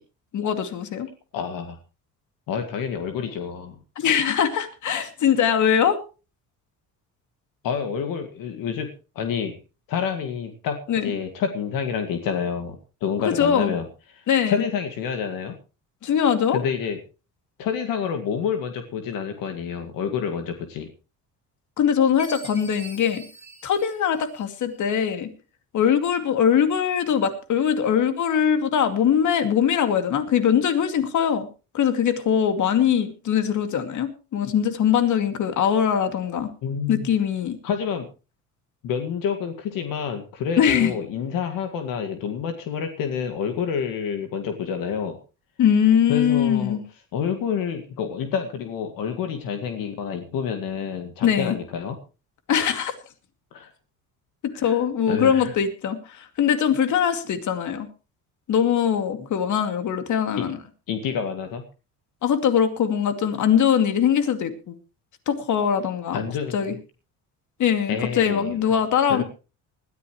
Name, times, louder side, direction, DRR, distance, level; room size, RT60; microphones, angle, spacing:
voice 1, 0.3-1.1 4.0-6.0 10.9-11.1 13.2-13.7 14.3-14.6 16.0-16.6 21.8-23.2 23.6-25.3 25.7-31.5 31.7-36.5 36.9-37.6 40.6-40.9 45.6-46.8 51.2-51.6 52.5-52.9 54.4-57.9 58.5-60.6 62.2-64.7 65.3-66.2 66.5-66.7 67.6-69.2, left 8 dB, 55° left, 8 dB, 2.5 m, -22 dB
voice 2, 1.3-1.8 2.5-3.8 7.6-8.9 9.2-9.6 9.9-13.9 14.1-15.6 16.5-17.0 17.6-20.9 36.6-37.1 37.6-38.1 38.8-45.2 46.1-46.8 47.1-52.0 53.5-53.7 54.5-54.7 55.1-55.5 60.4-60.5 60.9-61.6 66.1-66.8 67.9-68.6 69.1-69.2, left 7 dB, 75° left, 6 dB, 2.2 m, -28 dB
Chime, 22.2-24.7, equal, 20° left, 5.8 m, -43 dB
20.0 x 14.0 x 3.1 m, 0.32 s
cardioid pair, 105°, 34 cm